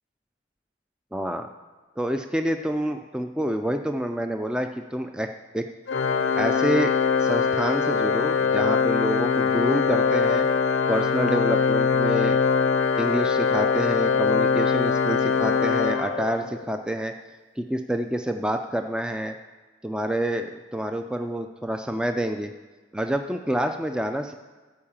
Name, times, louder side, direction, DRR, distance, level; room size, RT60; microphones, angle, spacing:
voice 1, 1.1-1.5 2.0-5.3 5.5-5.6 6.4-6.9 7.2-10.5 10.9-12.4 13.0-17.1 17.6-19.3 19.8-22.5 22.9-24.3, right 1 dB, 5° right, 6 dB, 0.3 m, -27 dB
Organ, 5.9-16.7, left 5 dB, 70° left, 0.5 m, -22 dB
13.5 x 4.7 x 7.2 m, 1.3 s
head